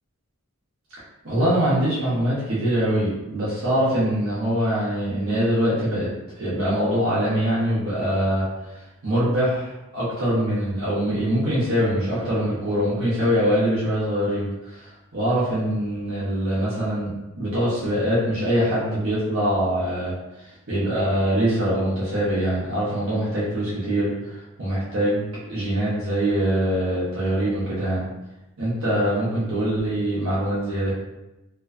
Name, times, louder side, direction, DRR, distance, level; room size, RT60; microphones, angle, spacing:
voice 1, 1.2-6.1 6.3-8.4 8.7-17.1 17.4-28.1 28.6-30.9, equal, 85° right, -9 dB, 0.8 m, -23 dB
2.5 x 2.2 x 2.4 m, 0.96 s
head